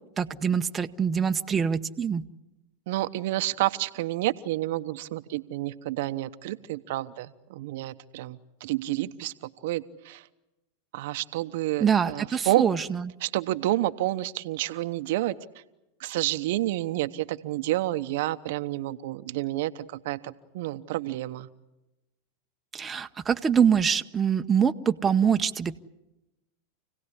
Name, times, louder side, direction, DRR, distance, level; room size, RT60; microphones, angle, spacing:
voice 1, 0.2-2.2 11.8-13.1 22.7-25.8, right 7 dB, 20° right, 7 dB, 0.9 m, -24 dB
voice 2, 2.9-10.3 10.9-12.6 13.2-15.3 16.0-21.5, right 16 dB, 65° right, 10 dB, 0.9 m, -29 dB
28.0 x 17.0 x 9.8 m, 0.99 s
hypercardioid pair, 105°, 0 cm